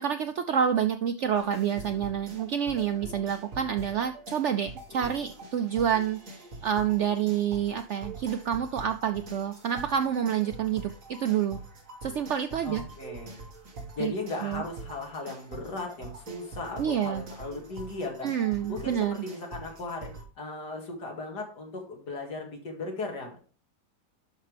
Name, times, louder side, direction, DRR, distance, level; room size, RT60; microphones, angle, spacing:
voice 1, 0.0-11.6 12.0-12.8 14.0-14.1 14.4-14.6 16.8-17.2 18.2-19.2, right 8 dB, 75° right, 9 dB, 0.6 m, -28 dB
sound 1, 1.3-20.2, right 2 dB, 50° right, 2.0 m, -44 dB
voice 2, 12.6-13.4 13.9-18.3 18.7-23.4, left 3 dB, 80° left, 1 dB, 2.7 m, -37 dB
11.5 x 5.5 x 3.4 m, 0.38 s
omnidirectional pair, 1.8 m